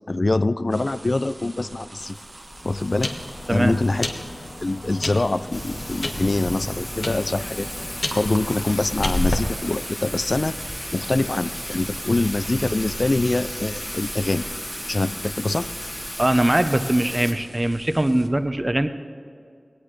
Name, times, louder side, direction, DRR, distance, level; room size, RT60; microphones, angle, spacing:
voice 1, 0.1-2.2 2.6-3.1 3.5-4.3 4.6-7.7 8.2-10.5 10.9-14.5 14.9-15.7, left 2 dB, 50° left, 13 dB, 0.3 m, -24 dB
sound 1, 0.7-18.3, right 2 dB, 55° right, 1.3 m, -43 dB
sound 2, 2.0-9.4, left 2 dB, 65° left, 1.3 m, -31 dB
Thunder / Rain, 5.5-17.3, equal, 20° left, 1.8 m, -34 dB
voice 2, 16.2-18.9, right 1 dB, 25° right, 9 dB, 0.7 m, -21 dB
19.5 x 17.5 x 3.3 m, 2.4 s
wide cardioid pair, 70°, 0 cm